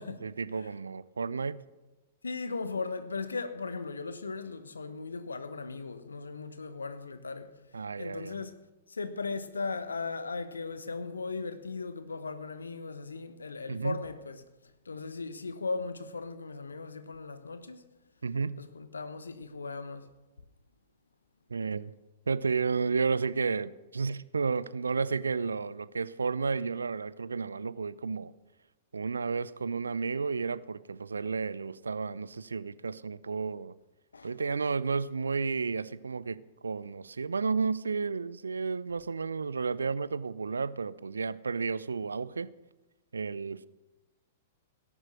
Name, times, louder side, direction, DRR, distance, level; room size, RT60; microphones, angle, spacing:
voice 1, 0.2-1.6 7.7-8.4 13.7-14.0 18.2-18.6 21.5-21.9 22.3-28.3 28.9-33.8 34.2-42.5 43.1-43.7, right 5 dB, 75° right, 0.6 m, -32 dB
voice 2, 2.2-7.6 8.0-8.6 8.9-14.4 14.8-17.8 18.6-20.1 34.1-34.3, left 4 dB, 75° left, 1.1 m, -37 dB
17.5 x 11.0 x 6.4 m
figure-of-eight pair, 105°, 0 cm